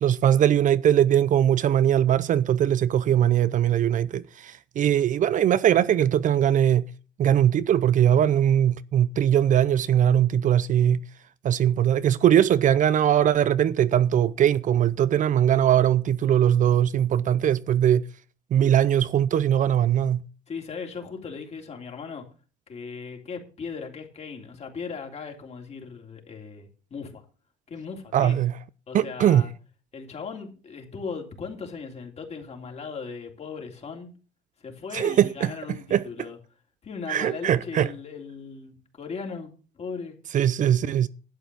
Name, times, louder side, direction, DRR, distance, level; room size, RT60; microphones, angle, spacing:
voice 1, 0.0-6.9 7.2-11.1 11.4-18.1 18.5-20.2 28.1-28.5 28.9-29.4 34.9-36.1 37.1-37.9 40.3-41.1, right 10 dB, 50° right, 0.5 m, -21 dB
voice 2, 20.5-22.2 22.7-27.2 27.7-28.4 28.9-29.5 29.9-34.1 34.6-36.4 36.8-39.5 39.8-40.2, left 5 dB, 40° left, 3.2 m, -37 dB
11.5 x 8.2 x 6.2 m
cardioid pair, 110°, 17 cm